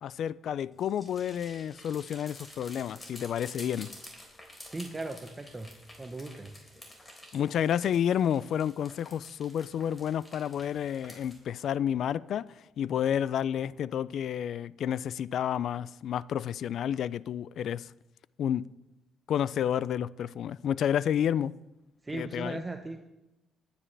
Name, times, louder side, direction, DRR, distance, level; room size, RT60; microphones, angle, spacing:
voice 1, 0.0-3.9 7.3-12.5 12.8-17.9 18.4-18.7 19.3-21.5 22.1-22.6, left 9 dB, 70° left, 0.3 m, -30 dB
sound 1, 0.7-11.4, left 1 dB, 15° left, 3.8 m, -51 dB
voice 2, 4.7-5.7 6.0-6.5 22.0-23.1, right 2 dB, 20° right, 0.9 m, -38 dB
20.5 x 9.8 x 3.4 m
cardioid pair, 90°, 0 cm